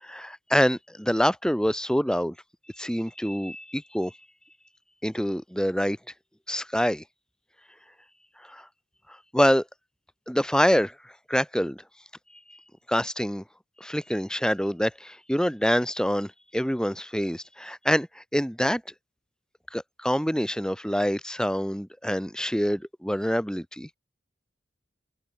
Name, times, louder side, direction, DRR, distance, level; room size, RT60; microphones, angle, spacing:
voice 1, 0.0-2.3 2.8-4.1 5.0-6.0 6.5-7.0 8.5-8.6 9.3-9.6 10.3-10.9 11.3-11.8 12.9-13.4 13.8-18.8 19.7-23.9, equal, 5° left, 5.6 m, -26 dB
open air
head